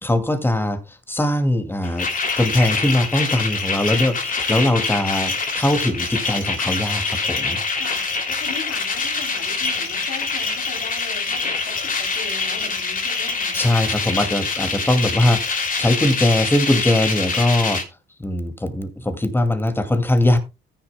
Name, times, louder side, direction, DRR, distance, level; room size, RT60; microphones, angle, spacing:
voice 1, 0.0-2.1 2.4-7.6 13.5-17.8 18.2-20.4, left 1 dB, 10° left, 2.3 m, -21 dB
sound 1, 1.8-17.8, left 4 dB, 45° left, 2.8 m, -25 dB
voice 2, 7.7-13.6, left 6 dB, 85° left, 3.4 m, -38 dB
14.5 x 10.0 x 2.2 m
cardioid pair, 90°, 20 cm